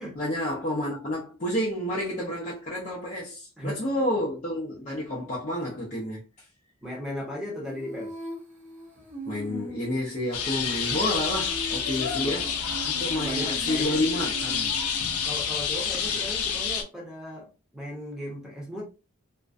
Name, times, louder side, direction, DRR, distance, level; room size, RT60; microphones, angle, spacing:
voice 1, 0.0-6.2 9.3-12.5 12.9-14.7, left 1 dB, 35° left, 0.5 m, -30 dB
voice 2, 6.8-8.1 12.1-12.6 13.2-14.0 15.2-18.8, left 1 dB, 5° right, 0.8 m, -37 dB
Female singing, 7.7-15.3, right 1 dB, 35° right, 0.6 m, -40 dB
sound 1, 10.3-16.8, left 7 dB, 85° left, 0.5 m, -28 dB
2.4 x 2.1 x 2.3 m
head